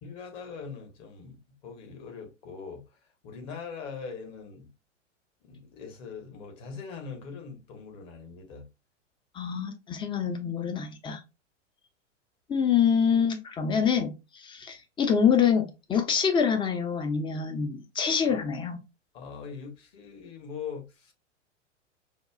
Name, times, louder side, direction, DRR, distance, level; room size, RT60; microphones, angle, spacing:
voice 1, 0.0-2.8 3.2-4.7 5.4-8.7 13.8-13.9 18.3-18.4 19.1-21.1, left 5 dB, 40° left, 1.3 m, -41 dB
voice 2, 9.4-11.2 12.5-14.2 14.4-18.8, left 7 dB, 15° left, 0.6 m, -26 dB
5.2 x 2.3 x 2.3 m
figure-of-eight pair, 100°, 38 cm